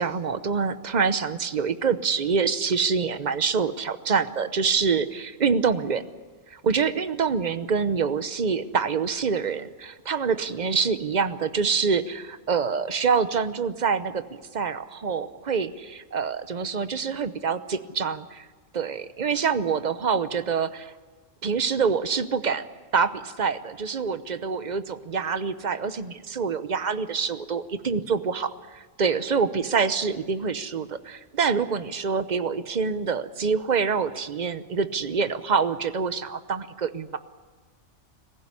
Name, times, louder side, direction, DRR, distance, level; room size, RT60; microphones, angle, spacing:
voice 1, 0.0-6.0 6.5-14.2 14.5-18.5 18.7-20.9 21.4-22.6 22.9-37.2, right 5 dB, 40° right, 12 dB, 0.9 m, -26 dB
22.5 x 15.5 x 9.7 m, 1.3 s
omnidirectional pair, 1.3 m